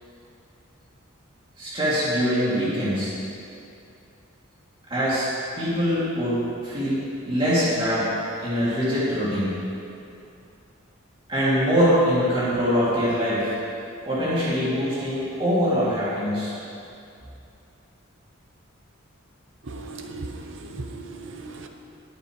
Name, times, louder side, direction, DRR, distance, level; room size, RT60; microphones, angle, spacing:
voice 1, 1.6-3.1 4.9-5.3 5.5-7.0 7.3-8.1 8.4-9.6 11.3-13.5 14.1-16.5, equal, 25° right, -11 dB, 2.9 m, -23 dB
voice 2, 19.7-21.7, right 3 dB, 65° right, 4 dB, 0.8 m, -37 dB
18.5 x 7.6 x 3.3 m, 2.6 s
head